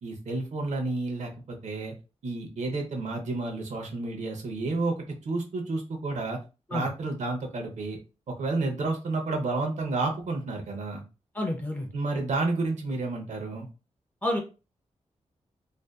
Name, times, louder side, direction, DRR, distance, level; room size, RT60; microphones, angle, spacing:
voice 1, 0.0-1.9 2.2-6.4 6.7-8.0 8.3-11.0 11.9-13.7, right 3 dB, 75° right, 2 dB, 0.7 m, -30 dB
voice 2, 11.4-11.9 14.2-14.4, left 1 dB, 15° left, 1 dB, 0.4 m, -28 dB
2.6 x 2.2 x 2.3 m, 0.31 s
wide cardioid pair, 175°, 12 cm